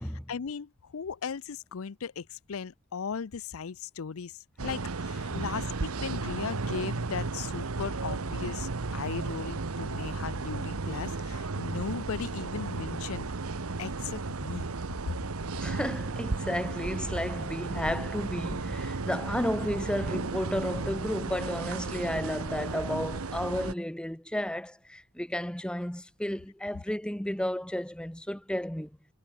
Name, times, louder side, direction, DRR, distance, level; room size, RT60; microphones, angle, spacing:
voice 1, 0.3-13.3 13.8-14.7, left 6 dB, 75° left, 0.5 m, -37 dB
sound 1, 4.6-23.7, right 3 dB, 90° right, 1.0 m, -34 dB
voice 2, 15.6-28.9, equal, 5° left, 0.9 m, -33 dB
head